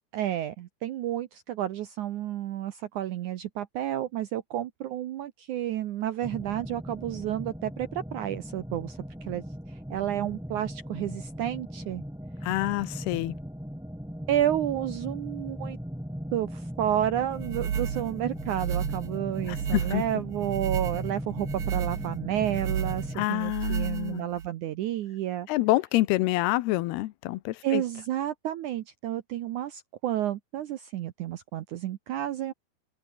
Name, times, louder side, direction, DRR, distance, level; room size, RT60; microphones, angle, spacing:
voice 1, 0.1-9.4 9.9-12.0 14.3-15.8 16.3-25.5 27.6-32.5, right 12 dB, 75° right, 1.8 m, -31 dB
sound 1, 6.2-23.3, equal, ahead, 2.9 m, -38 dB
voice 2, 12.4-13.4 19.5-20.0 23.2-24.3 25.5-27.8, left 18 dB, 80° left, 2.8 m, -27 dB
sound 2, 17.3-24.5, right 8 dB, 50° right, 3.4 m, -32 dB
omnidirectional pair, 4.6 m